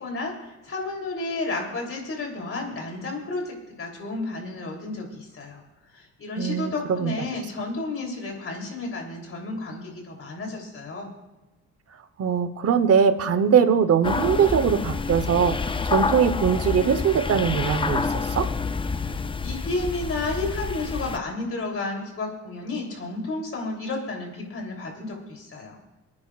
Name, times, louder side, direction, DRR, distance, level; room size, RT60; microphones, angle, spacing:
voice 1, 0.0-5.6 5.9-11.1 18.9-25.8, left 2 dB, 45° left, 1 dB, 3.3 m, -32 dB
voice 2, 6.4-7.3 12.2-18.5, right 7 dB, 50° right, 11 dB, 1.0 m, -21 dB
sound 1, 14.0-21.2, left 4 dB, 15° left, 0.4 m, -28 dB
27.0 x 9.7 x 2.5 m, 1.1 s
cardioid pair, 90°, 30 cm